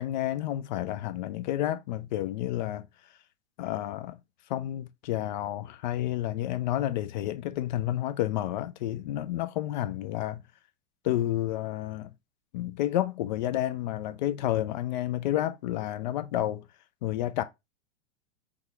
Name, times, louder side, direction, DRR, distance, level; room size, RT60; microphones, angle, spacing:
voice 1, 0.0-2.9 3.6-4.2 4.5-10.4 11.0-12.1 12.5-16.6 17.0-17.4, left 13 dB, 40° left, 0.4 m, -30 dB
3.6 x 3.5 x 3.0 m
figure-of-eight pair, 105°, 35 cm